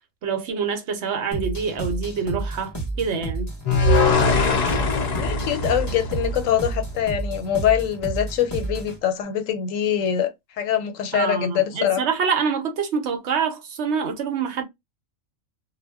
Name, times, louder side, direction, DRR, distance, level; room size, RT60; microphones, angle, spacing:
voice 1, 0.2-3.5 11.1-14.6, right 6 dB, 65° right, 0.8 m, -26 dB
sound 1, 1.3-9.0, right 2 dB, 15° left, 0.6 m, -31 dB
sound 2, 3.7-6.9, left 3 dB, 55° left, 0.4 m, -22 dB
voice 2, 5.2-12.0, left 9 dB, 75° left, 1.0 m, -24 dB
2.2 x 2.1 x 3.4 m
omnidirectional pair, 1.4 m